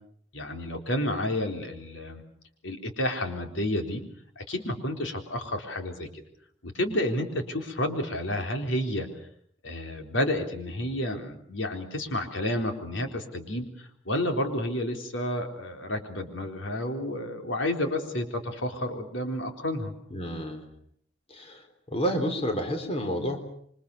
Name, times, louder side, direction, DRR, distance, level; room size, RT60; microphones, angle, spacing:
voice 1, 0.3-2.2 2.6-4.0 4.4-6.2 6.6-9.1 9.6-19.9, left 1 dB, 90° left, 4 dB, 4.0 m, -30 dB
voice 2, 20.1-20.7 21.3-23.4, equal, 30° left, 6 dB, 3.8 m, -30 dB
27.5 x 24.5 x 6.8 m, 0.64 s
head